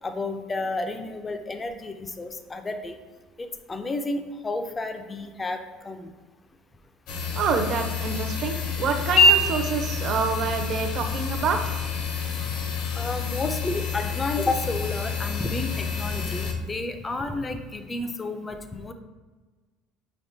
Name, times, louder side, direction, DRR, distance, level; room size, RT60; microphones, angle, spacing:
voice 1, 0.0-3.0 3.4-6.1 12.9-18.9, left 2 dB, 15° left, 7 dB, 0.4 m, -31 dB
sound 1, 7.1-16.5, left 3 dB, 55° left, 0.7 m, -26 dB
voice 2, 7.3-11.7, right 6 dB, 40° right, 6 dB, 0.5 m, -27 dB
5.5 x 3.4 x 2.7 m, 1.3 s
cardioid pair, 150°, 0 cm